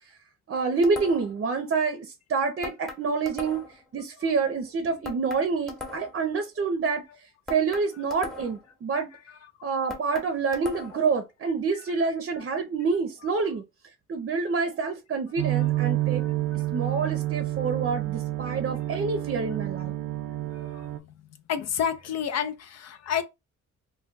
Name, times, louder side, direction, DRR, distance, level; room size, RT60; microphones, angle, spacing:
voice 1, 0.5-3.6 3.9-7.0 7.5-9.1 9.6-13.6 14.1-16.2 16.7-19.9, right 4 dB, 45° right, 0.6 m, -27 dB
sound 1, 0.8-1.4 2.6-3.8 5.0-6.3 7.5-8.7 9.9-11.1, left 2 dB, ahead, 0.8 m, -40 dB
sound 2, 15.4-21.0, right 16 dB, 90° right, 0.4 m, -29 dB
voice 2, 20.5-21.1 21.5-23.2, left 8 dB, 60° left, 0.5 m, -30 dB
2.3 x 2.2 x 3.8 m
cardioid pair, 90°, 30 cm